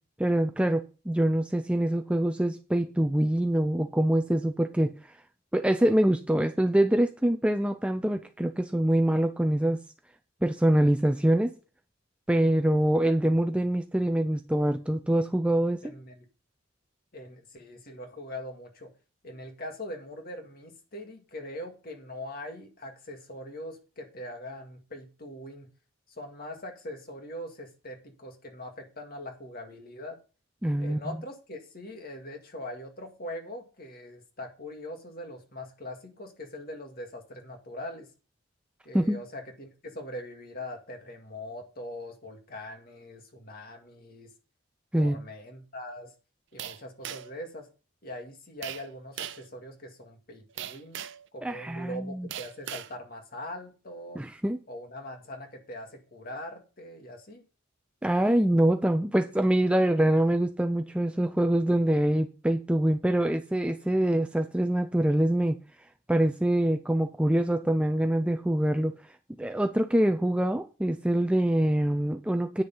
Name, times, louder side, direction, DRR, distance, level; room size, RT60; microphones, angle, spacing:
voice 1, 0.2-4.9 5.5-9.8 10.4-11.5 12.3-16.0 30.6-31.0 38.9-39.2 44.9-45.2 51.4-52.3 54.2-54.6 58.0-65.6 66.1-69.0 69.4-72.6, right 1 dB, 5° right, 0.4 m, -25 dB
voice 2, 15.8-16.3 17.1-18.9 19.2-25.7 26.1-30.2 30.8-38.1 38.8-44.3 45.0-46.1 46.5-47.7 48.0-51.0 51.3-54.2 54.7-57.4, left 1 dB, 45° left, 2.0 m, -42 dB
sound 1, 46.6-47.4 48.6-48.9 49.2-49.5 50.6-51.3 52.3-52.9, right 11 dB, 55° right, 0.5 m, -38 dB
9.6 x 6.7 x 5.5 m
head